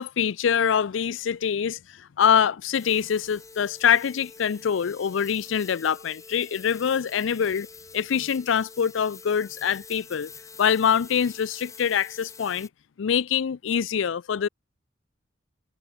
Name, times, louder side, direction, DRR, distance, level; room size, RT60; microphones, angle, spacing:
voice 1, 0.0-7.7 7.9-10.3 10.6-12.7 13.0-14.5, left 7 dB, 80° left, 0.4 m, -24 dB
sound 1, 2.7-12.7, left 4 dB, 15° left, 0.7 m, -46 dB
head